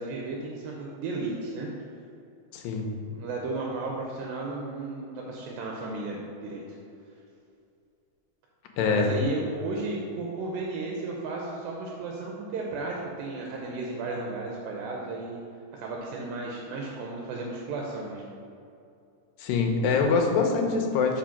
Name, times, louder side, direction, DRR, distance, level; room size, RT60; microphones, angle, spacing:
voice 1, 0.0-1.7 3.1-6.8 8.8-15.4 15.7-18.2, right 3 dB, 85° right, -1 dB, 2.5 m, -34 dB
voice 2, 2.5-2.9 8.8-9.1 19.4-21.2, left 4 dB, 80° left, 3 dB, 2.5 m, -24 dB
5.5 x 5.0 x 5.7 m, 2.6 s
omnidirectional pair, 4.0 m